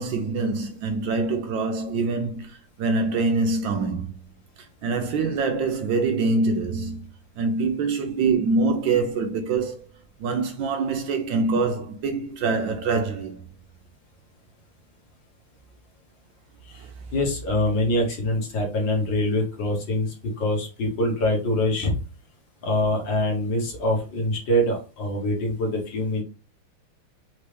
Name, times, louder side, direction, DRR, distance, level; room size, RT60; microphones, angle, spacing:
voice 1, 0.0-4.2 4.8-7.0 7.4-9.8 10.2-13.4 16.8-16.9, right 3 dB, 70° right, 1.2 m, -25 dB
voice 2, 17.1-21.9 22.6-26.2, left 1 dB, 60° left, 2.0 m, -24 dB
4.3 x 3.1 x 3.3 m
omnidirectional pair, 2.3 m